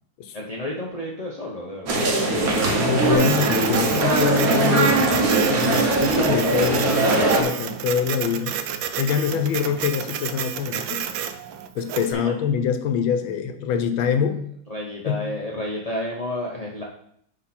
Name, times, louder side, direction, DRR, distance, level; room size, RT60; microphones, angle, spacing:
voice 1, 0.3-2.0 12.1-12.3 14.7-16.8, left 1 dB, 40° left, -3 dB, 0.5 m, -31 dB
sound 1, 1.9-7.4, right 2 dB, 50° right, 1.6 m, -20 dB
voice 2, 2.2-8.6 9.0-11.0 11.7-14.4 15.0-15.3, left 7 dB, 80° left, 7 dB, 1.6 m, -25 dB
Printer, 3.1-12.1, right 9 dB, 75° right, 1.3 m, -30 dB
9.6 x 4.0 x 4.3 m, 0.67 s
omnidirectional pair, 2.2 m